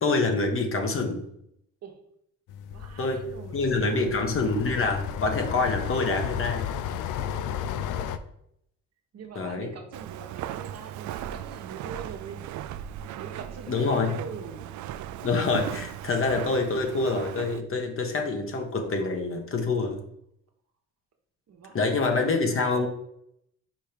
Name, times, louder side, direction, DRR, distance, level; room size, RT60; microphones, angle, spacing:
voice 1, 0.0-1.2 3.0-3.2 3.5-6.7 9.3-9.7 13.7-14.1 15.2-20.0 21.7-22.9, left 3 dB, 45° left, 3 dB, 1.4 m, -26 dB
sound 1, 2.5-8.2, left 9 dB, 85° left, 0.5 m, -33 dB
voice 2, 2.5-4.1 9.1-12.5 13.0-14.7 21.5-22.4, right 6 dB, 55° right, 3 dB, 1.3 m, -43 dB
Walk footsteps, 9.9-17.6, right 12 dB, 75° right, 0.4 m, -38 dB
5.2 x 4.5 x 5.2 m, 0.74 s
cardioid pair, 90°, 30 cm